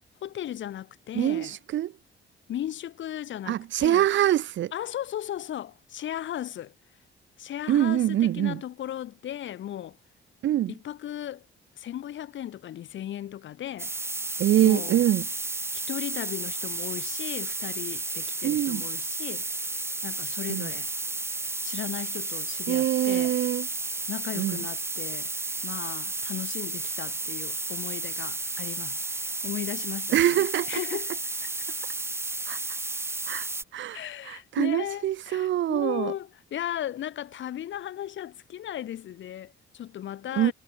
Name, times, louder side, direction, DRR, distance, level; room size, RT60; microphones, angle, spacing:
voice 1, 0.2-1.6 2.5-4.1 4.7-6.7 7.4-10.0 10.7-11.4 11.8-13.9 14.6-15.0 15.7-19.5 20.0-20.9 21.6-23.3 24.1-25.3 25.6-29.0 29.4-31.1 31.4-31.5 33.9-40.5, left 11 dB, 70° left, 4.4 m, -36 dB
voice 2, 1.1-1.9 3.5-4.7 7.7-8.6 10.4-10.7 14.4-15.2 18.4-18.8 20.5-20.7 22.7-23.7 24.3-24.6 30.1-30.7 32.5-32.6 33.3-36.1 40.4-40.5, right 12 dB, 70° right, 1.3 m, -24 dB
sound 1, 13.8-33.6, right 3 dB, 10° right, 0.5 m, -32 dB
cardioid pair, 90°, 20 cm